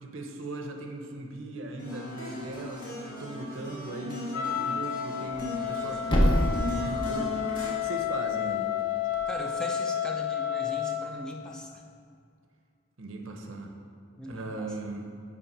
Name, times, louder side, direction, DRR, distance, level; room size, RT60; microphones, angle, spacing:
voice 1, 0.0-8.7 13.0-13.7 14.3-15.1, right 2 dB, 65° right, 3 dB, 0.7 m, -38 dB
sound 1, 1.8-7.7, left 1 dB, 45° left, 1.3 m, -38 dB
Wind instrument woodwind instrument, 4.3-11.1, left 10 dB, 85° left, 0.4 m, -31 dB
Thump thud, 5.2-9.3, equal, 25° left, 0.8 m, -30 dB
voice 2, 9.3-11.8 14.2-14.7, left 1 dB, 5° left, 0 dB, 0.5 m, -40 dB
5.7 x 4.8 x 5.5 m, 2.4 s
head